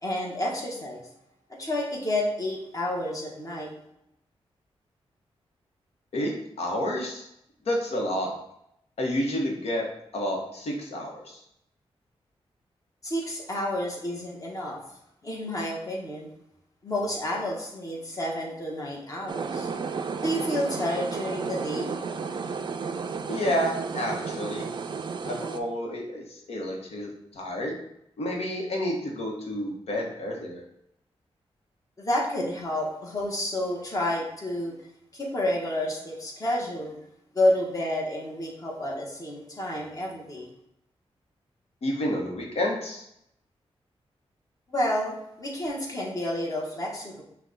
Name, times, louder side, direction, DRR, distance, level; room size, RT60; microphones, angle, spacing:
voice 1, 0.0-1.0 1.5-3.7 13.0-14.8 15.2-16.3 16.8-19.7 20.2-21.9 32.0-34.7 35.1-36.9 37.3-40.5 44.7-47.2, left 1 dB, 35° left, -2 dB, 1.2 m, -30 dB
voice 2, 6.1-7.3 7.7-8.3 9.0-9.8 10.1-11.4 23.3-24.7 25.3-27.7 28.2-30.6 41.8-43.0, left 1 dB, 75° left, 0 dB, 1.0 m, -30 dB
sound 1, 19.3-25.6, right 5 dB, 45° right, 0.4 m, -32 dB
5.8 x 2.3 x 4.0 m, 0.77 s
wide cardioid pair, 105°, 11 cm